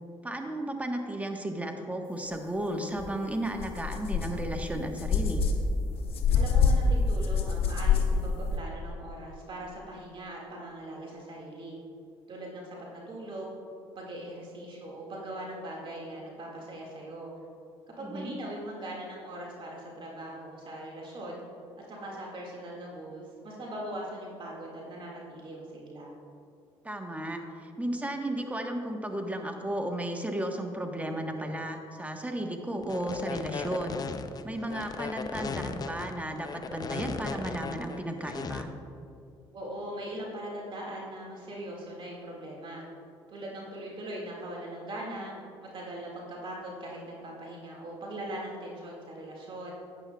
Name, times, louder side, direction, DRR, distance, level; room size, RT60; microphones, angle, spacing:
voice 1, 0.2-5.4 18.0-18.3 26.8-34.0 34.4-38.7, right 1 dB, 15° right, 4 dB, 1.2 m, -34 dB
sound 1, 3.0-3.1 3.5-8.6, left 5 dB, 60° left, 1.1 m, -26 dB
voice 2, 6.3-11.7 12.3-13.5 14.0-17.3 18.0-21.4 21.9-26.1 39.5-42.8 43.3-49.7, right 1 dB, 50° right, -2 dB, 2.0 m, -40 dB
sound 2, 32.8-38.6, left 5 dB, 35° left, 0.6 m, -36 dB
12.0 x 9.0 x 2.3 m, 2.5 s
supercardioid pair, 65°, 11 cm